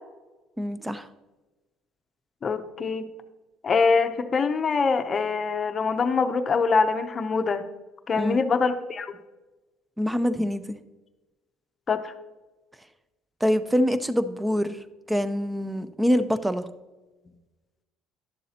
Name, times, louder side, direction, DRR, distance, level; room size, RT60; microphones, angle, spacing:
voice 1, 0.6-1.1 8.2-8.4 10.0-10.8 13.4-14.8 15.1-16.7, equal, 10° right, 13 dB, 0.6 m, -25 dB
voice 2, 2.4-3.1 3.6-7.6 8.1-9.1 11.9-12.1, left 4 dB, 35° left, 8 dB, 0.7 m, -24 dB
11.0 x 7.0 x 2.9 m, 1.1 s
cardioid pair, 100°, 0 cm